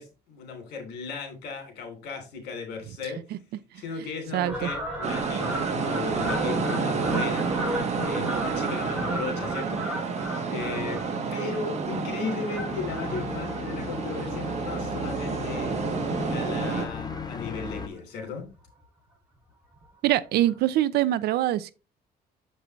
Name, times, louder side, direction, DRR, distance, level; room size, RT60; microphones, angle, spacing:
voice 1, 0.0-3.2 3.7-11.0 11.3-15.8 16.3-18.4, left 4 dB, 80° left, 3.1 m, -36 dB
voice 2, 4.3-4.7 20.0-21.7, right 13 dB, 70° right, 0.6 m, -24 dB
Fowl, 4.4-15.2 15.7-15.9 16.6-17.2 17.5-17.6 17.8-17.9 18.2-18.3 18.7-18.8 19.8-19.9 20.5-20.6, right 1 dB, 5° right, 2.8 m, -35 dB
sound 1, 5.0-16.9, right 5 dB, 40° right, 1.6 m, -30 dB
sound 2, 12.7-17.9, left 5 dB, 25° left, 0.9 m, -36 dB
7.3 x 5.4 x 3.1 m
cardioid pair, 110°, 17 cm